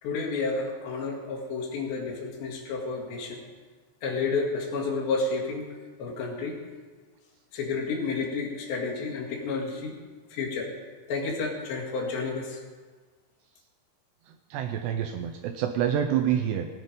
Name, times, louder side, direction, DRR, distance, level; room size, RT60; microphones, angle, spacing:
voice 1, 0.0-3.4 4.0-5.7 6.0-6.6 7.5-10.0 10.3-10.7 11.1-12.6, left 4 dB, 70° left, -2 dB, 4.1 m, -30 dB
voice 2, 14.5-16.7, right 9 dB, 80° right, 6 dB, 2.5 m, -27 dB
19.0 x 9.0 x 5.1 m, 1.4 s
omnidirectional pair, 5.4 m